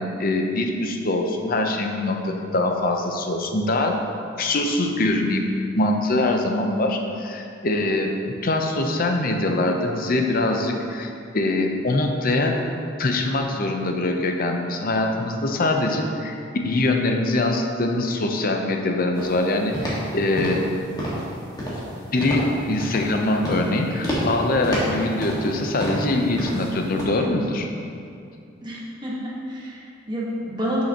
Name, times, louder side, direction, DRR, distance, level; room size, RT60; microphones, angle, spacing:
voice 1, 0.0-4.0 4.4-5.4 5.7-8.1 8.4-12.6 13.0-16.4 16.6-20.6 22.1-27.7, left 2 dB, 45° left, 3 dB, 0.7 m, -23 dB
sound 1, 19.1-19.4 19.7-20.1 20.4-20.7 21.0-21.3 21.6-21.9 22.2-22.5 22.8-23.2 23.4-23.7 24.0-24.3 24.6-25.5 25.8-26.1 26.4-26.7 27.0-27.1, equal, 20° left, 1.6 m, -28 dB
voice 2, 28.6-30.8, equal, 25° right, -5 dB, 1.3 m, -29 dB
10.0 x 5.7 x 2.9 m, 2.5 s
head